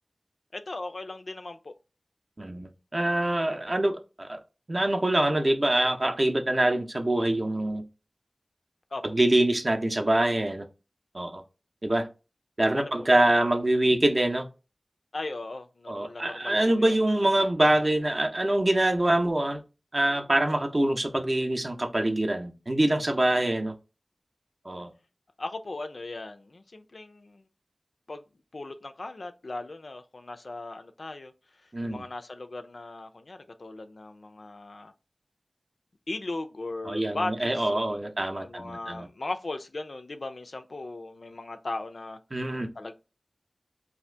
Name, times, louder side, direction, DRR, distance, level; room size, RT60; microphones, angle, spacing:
voice 1, 0.5-1.7 8.9-9.0 12.7-13.1 15.1-17.0 25.4-27.4 28.1-28.2 28.5-31.3 31.6-34.9 36.1-38.0 38.3-42.2 42.8-42.9, left 2 dB, 70° left, 0.4 m, -38 dB
voice 2, 2.4-4.4 4.7-7.8 9.0-10.6 11.1-11.4 11.8-12.1 12.6-14.5 15.9-19.6 19.9-23.7 24.7-24.9 31.7-32.0 36.9-39.1 42.3-42.7, right 1 dB, 40° right, 0.5 m, -25 dB
2.7 x 2.4 x 3.2 m
wide cardioid pair, 70°, 0 cm